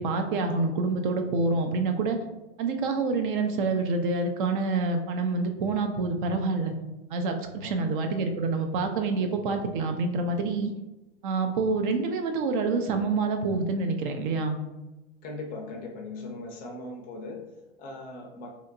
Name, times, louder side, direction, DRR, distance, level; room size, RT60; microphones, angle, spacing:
voice 1, 0.0-2.2 2.6-6.7 7.1-10.7 11.2-14.6, right 3 dB, 50° right, 5 dB, 0.4 m, -27 dB
voice 2, 7.6-8.0 15.2-18.5, left 2 dB, 30° left, 1 dB, 0.4 m, -39 dB
2.8 x 2.1 x 2.5 m, 1.0 s
hypercardioid pair, 100°, 33 cm